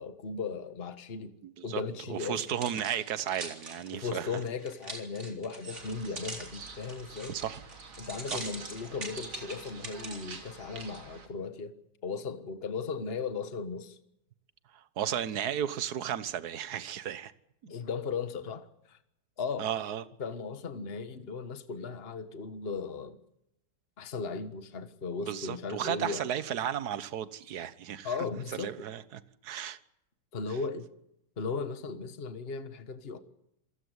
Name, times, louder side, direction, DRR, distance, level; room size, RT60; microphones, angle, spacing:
voice 1, 0.0-1.3 1.6-2.4 3.9-7.4 8.0-11.7 12.0-14.0 17.7-19.0 19.4-19.7 20.2-23.2 24.0-26.3 28.0-28.8 30.3-30.9 31.4-33.2, left 5 dB, 30° left, 1.5 m, -37 dB
voice 2, 1.4-1.8 2.1-4.4 7.3-7.6 8.3-8.4 14.7-17.3 19.6-20.0 25.3-28.2 28.5-29.8, right 9 dB, 55° right, 1.5 m, -34 dB
sound 1, 2.2-10.3 10.8-11.0, right 2 dB, 35° right, 4.2 m, -43 dB
sound 2, 5.7-11.3, right 4 dB, 80° right, 3.6 m, -48 dB
27.5 x 16.5 x 8.1 m
omnidirectional pair, 2.2 m